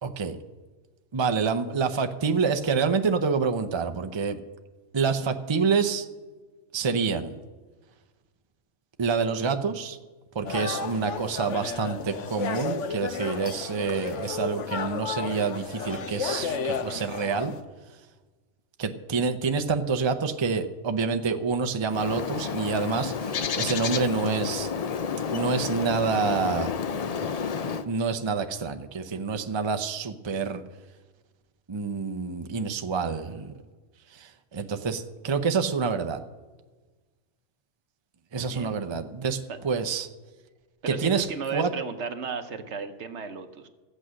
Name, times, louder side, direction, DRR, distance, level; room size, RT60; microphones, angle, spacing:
voice 1, 0.0-0.4 1.1-4.4 4.9-6.1 6.7-7.4 9.0-10.0 10.3-17.5 18.8-24.7 25.3-26.7 27.9-30.6 31.7-33.5 34.1-36.2 38.3-40.1 40.9-41.3 41.5-41.7, right 5 dB, 30° right, 7 dB, 0.5 m, -27 dB
sound 1, 10.4-17.6, left 5 dB, 75° left, 1.1 m, -33 dB
Bird, 21.9-27.8, left 6 dB, 50° left, 0.4 m, -30 dB
voice 2, 38.5-38.8 39.5-39.6 40.8-43.7, right 5 dB, 65° right, 8 dB, 1.2 m, -35 dB
13.5 x 8.4 x 6.3 m, 1.3 s
omnidirectional pair, 1.3 m